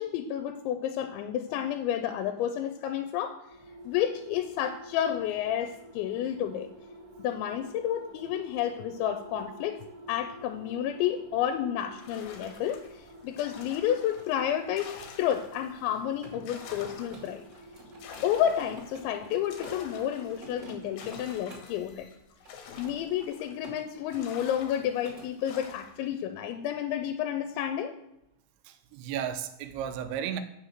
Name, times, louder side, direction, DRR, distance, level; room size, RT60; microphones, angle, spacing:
voice 1, 0.0-3.4 3.8-6.7 7.2-9.8 10.1-17.4 18.2-22.1 22.8-27.9, left 10 dB, 90° left, 2.9 m, -30 dB
sound 1, 3.4-22.4, equal, 55° right, 1.4 m, -50 dB
sound 2, 12.0-15.8 16.2-23.7 24.1-26.1, left 6 dB, 75° left, 3.1 m, -48 dB
Mechanisms, 15.9-19.9 20.3-21.8 22.4-23.8 24.1-24.4 24.7-25.3, right 1 dB, 25° right, 2.5 m, -48 dB
voice 2, 28.7-30.4, right 9 dB, 85° right, 3.0 m, -34 dB
6.7 x 6.5 x 7.6 m
omnidirectional pair, 5.2 m